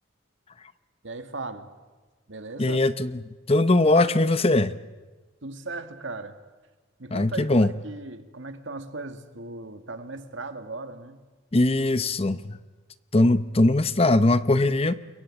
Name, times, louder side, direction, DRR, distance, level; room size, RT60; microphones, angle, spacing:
voice 1, 1.0-1.7 2.3-2.8 5.4-6.4 7.0-11.2, right 3 dB, 70° right, 8 dB, 2.1 m, -37 dB
voice 2, 2.6-3.2 3.5-4.7 7.1-7.7 11.5-12.6 13.1-14.9, left 2 dB, 30° left, 14 dB, 0.7 m, -21 dB
28.5 x 22.5 x 8.8 m, 1.3 s
head